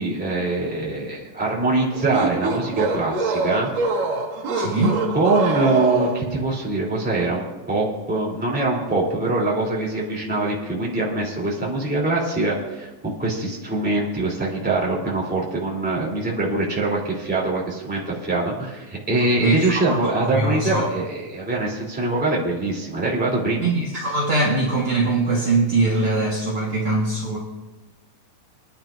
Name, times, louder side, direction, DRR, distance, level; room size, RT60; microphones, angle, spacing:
voice 1, 0.0-3.7 5.1-23.7, right 2 dB, 5° right, -4 dB, 2.7 m, -23 dB
sound 1, 1.9-6.4, right 3 dB, 80° right, 3.4 m, -25 dB
voice 2, 4.5-5.0 19.4-20.9 23.6-27.4, right 2 dB, 50° right, -5 dB, 2.1 m, -22 dB
27.0 x 10.0 x 2.6 m, 1.1 s
omnidirectional pair, 3.8 m